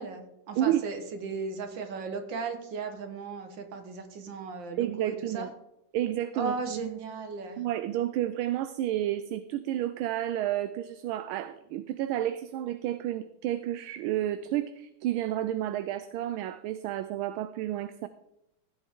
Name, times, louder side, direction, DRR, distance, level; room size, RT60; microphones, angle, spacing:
voice 1, 0.0-5.5 6.3-7.6, right 4 dB, 60° right, 6 dB, 2.0 m, -36 dB
voice 2, 4.8-5.5 5.9-6.9 7.6-18.1, right 12 dB, 80° right, 12 dB, 1.4 m, -31 dB
15.5 x 7.7 x 3.7 m, 0.83 s
omnidirectional pair, 2.4 m